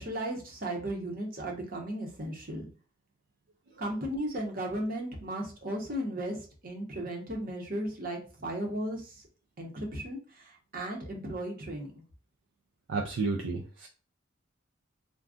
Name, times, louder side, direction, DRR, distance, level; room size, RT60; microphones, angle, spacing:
voice 1, 0.0-2.7 3.8-9.2 9.6-12.0, right 1 dB, 45° right, 0 dB, 0.8 m, -35 dB
voice 2, 12.9-13.9, right 4 dB, 65° right, 1 dB, 0.4 m, -31 dB
2.5 x 2.2 x 3.5 m, 0.36 s
head